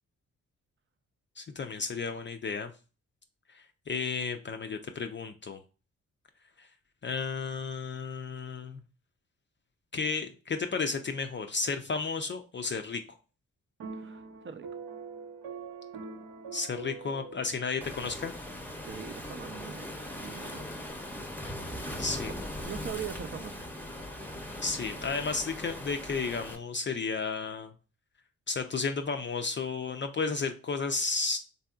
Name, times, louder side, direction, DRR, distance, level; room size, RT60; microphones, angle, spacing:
voice 1, 1.4-2.7 3.5-5.6 6.6-6.7 7.0-8.8 9.9-13.2 16.5-18.3 22.0-22.3 24.5-27.7 28.5-31.4, left 4 dB, 35° left, 0.4 m, -33 dB
sound 1, 13.8-18.3, right 5 dB, 70° right, 0.7 m, -44 dB
voice 2, 13.9-14.7 17.3-17.4 18.8-20.9 22.6-23.7, right 7 dB, 35° right, 0.5 m, -43 dB
Waves surf, 17.8-26.6, left 1 dB, 5° left, 0.7 m, -40 dB
3.4 x 2.6 x 2.3 m
hypercardioid pair, 40°, 35 cm